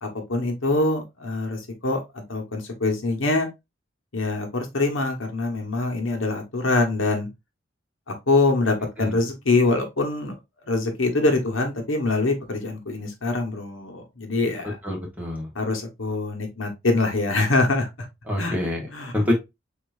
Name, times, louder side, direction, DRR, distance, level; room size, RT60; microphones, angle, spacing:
voice 1, 0.0-3.5 4.1-7.3 8.1-10.3 10.7-14.8 15.5-18.1 18.4-18.5 18.9-19.1, left 2 dB, 85° left, 1.3 m, -24 dB
voice 2, 14.8-15.5 18.3-18.9 19.1-19.3, left 1 dB, 10° right, 1.5 m, -26 dB
6.5 x 2.9 x 2.6 m
head